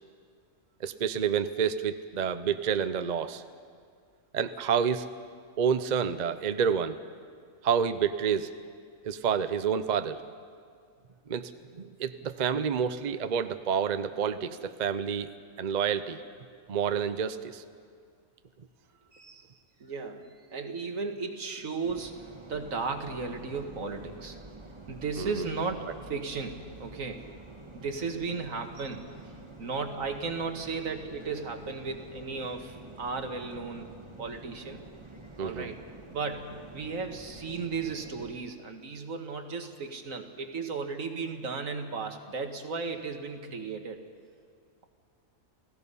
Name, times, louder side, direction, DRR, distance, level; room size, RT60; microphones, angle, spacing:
voice 1, 0.8-3.4 4.3-5.0 5.6-7.0 7.6-8.5 9.0-10.2 11.3-15.3 15.6-16.2 16.7-17.6 25.2-25.4 35.4-35.7, right 7 dB, 45° right, 11 dB, 0.6 m, -29 dB
voice 2, 19.1-19.5 19.8-22.2 22.5-24.4 24.9-27.3 27.7-29.1 29.6-33.9 34.2-34.8 35.4-35.8 36.1-36.5 36.7-44.0, right 4 dB, 75° right, 5 dB, 1.9 m, -35 dB
sound 1, 21.8-38.3, right 2 dB, 20° right, 1.5 m, -48 dB
29.5 x 17.0 x 5.5 m, 2.2 s
omnidirectional pair, 1.4 m